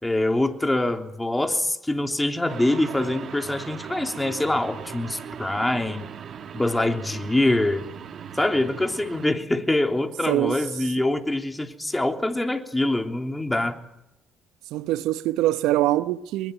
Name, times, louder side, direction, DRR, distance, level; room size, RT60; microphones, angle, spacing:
voice 1, 0.0-6.1 6.5-7.8 8.3-13.8, left 1 dB, 15° left, 3.2 m, -24 dB
sound 1, 2.5-9.3, right 7 dB, 55° right, 1.7 m, -39 dB
voice 2, 14.7-16.5, right 15 dB, 75° right, 0.9 m, -23 dB
22.5 x 21.5 x 9.3 m
hypercardioid pair, 50°, 0 cm